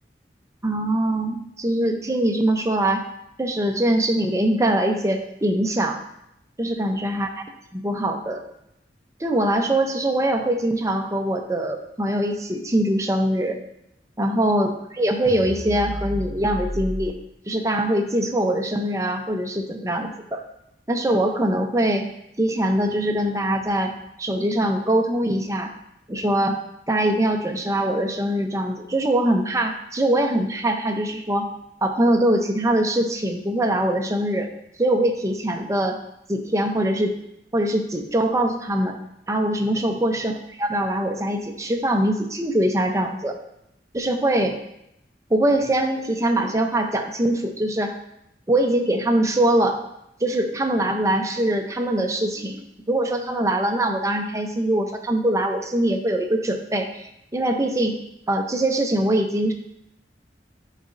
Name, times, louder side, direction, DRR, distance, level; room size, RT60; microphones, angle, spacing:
voice 1, 0.6-3.1 3.4-6.0 6.6-7.3 7.7-8.4 9.2-13.6 14.2-17.1 17.5-20.4 20.9-22.1 22.4-23.9 24.2-25.7 26.1-26.6 26.9-31.5 31.8-34.5 34.8-36.0 36.3-37.2 37.5-39.0 39.3-40.3 40.6-43.4 43.9-44.6 45.3-47.9 48.5-49.8 50.2-52.6 52.9-58.0 58.3-59.5, right 1 dB, 20° right, 4 dB, 0.6 m, -22 dB
sound 1, 15.2-17.1, equal, 20° left, 2.8 m, -31 dB
11.5 x 4.1 x 2.6 m, 0.80 s
head